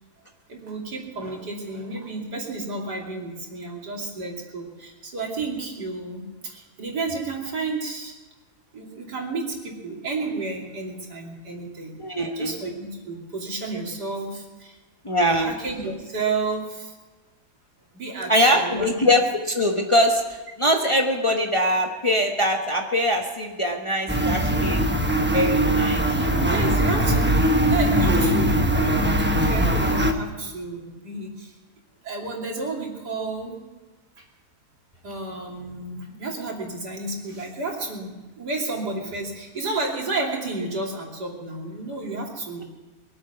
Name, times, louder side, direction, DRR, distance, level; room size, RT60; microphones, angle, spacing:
voice 1, 0.5-8.1 8.7-11.9 12.3-14.8 15.4-16.9 17.9-18.9 26.4-31.5 32.0-33.6 34.2-34.3 35.0-42.7, right 3 dB, 80° right, -1 dB, 3.4 m, -31 dB
voice 2, 12.0-12.5 15.0-15.5 18.3-24.8 25.3-26.5, equal, 20° left, 2 dB, 1.2 m, -22 dB
sound 1, 24.1-30.1, equal, 10° right, 0.7 m, -21 dB
23.0 x 8.9 x 5.9 m, 1.2 s
omnidirectional pair, 1.7 m